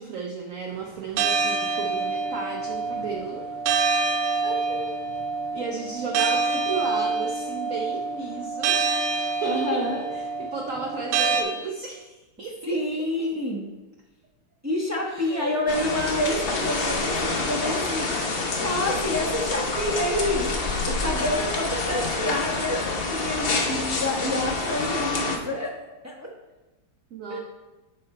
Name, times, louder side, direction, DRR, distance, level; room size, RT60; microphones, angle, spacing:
voice 1, 0.0-3.5 3.8-3.9 5.5-8.8 9.1-13.3 15.1-15.6 27.1-27.4, right 4 dB, 65° right, 1 dB, 0.8 m, -34 dB
sound 1, 1.2-11.4, right 4 dB, 90° right, 1.7 m, -26 dB
voice 2, 4.4-4.9 9.4-10.1 12.7-13.7 14.6-18.2 18.6-20.6 20.9-25.7 26.0-26.3 27.3-27.4, left 1 dB, 15° right, -3 dB, 0.5 m, -28 dB
sound 2, 15.7-25.4, left 3 dB, 70° left, 0.5 m, -27 dB
9.7 x 4.3 x 4.3 m, 1.1 s
omnidirectional pair, 2.3 m